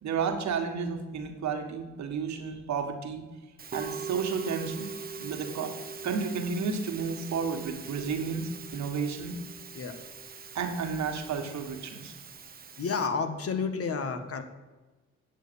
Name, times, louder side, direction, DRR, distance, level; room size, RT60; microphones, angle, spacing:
voice 1, 0.0-3.2 3.7-4.9 5.2-5.7 6.0-9.3 10.5-12.1, right 5 dB, 65° right, 4 dB, 1.6 m, -32 dB
Musical instrument, 3.6-13.1, right 5 dB, 30° right, 0.9 m, -42 dB
voice 2, 12.8-14.4, left 5 dB, 50° left, 8 dB, 1.3 m, -31 dB
8.9 x 6.7 x 6.9 m, 1.2 s
cardioid pair, 90°, 30 cm